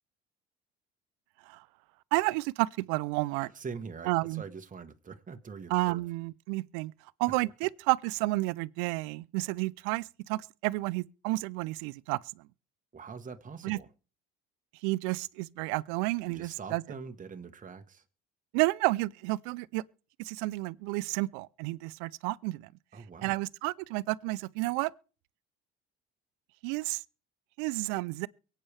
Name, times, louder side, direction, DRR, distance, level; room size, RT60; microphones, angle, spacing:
voice 1, 2.1-3.5 4.1-4.4 5.7-6.9 7.2-12.5 13.6-13.8 14.8-16.8 18.5-19.8 20.2-22.7 23.2-24.9 26.6-27.0 27.6-28.3, right 22 dB, 80° right, 0.5 m, -31 dB
voice 2, 3.4-6.0 12.9-13.9 16.3-18.0 22.9-23.3, right 5 dB, 25° right, 1.3 m, -43 dB
23.5 x 8.6 x 3.4 m
supercardioid pair, 70°, 29 cm